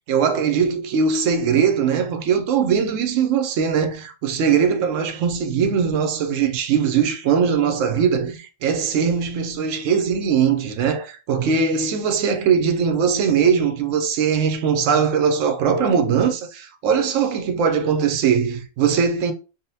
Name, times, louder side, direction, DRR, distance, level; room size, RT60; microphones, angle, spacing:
voice 1, 0.1-19.3, right 6 dB, 80° right, 1.0 m, -20 dB
3.8 x 2.1 x 2.6 m
omnidirectional pair, 1.3 m